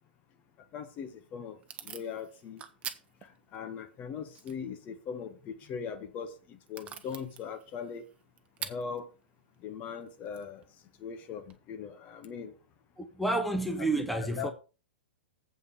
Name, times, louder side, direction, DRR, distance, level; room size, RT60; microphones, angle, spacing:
voice 1, 0.7-1.6 1.8-2.6 3.5-8.0 8.6-9.1 9.6-10.6 11.0-12.5 13.8-14.1 14.4-14.5, left 6 dB, 30° left, 1.3 m, -40 dB
Packing tape duct tape / Tearing, 0.8-11.6, right 9 dB, 20° right, 1.1 m, -49 dB
voice 2, 13.0-14.5, right 2 dB, ahead, 1.2 m, -30 dB
8.2 x 5.4 x 6.9 m
figure-of-eight pair, 105°, 6 cm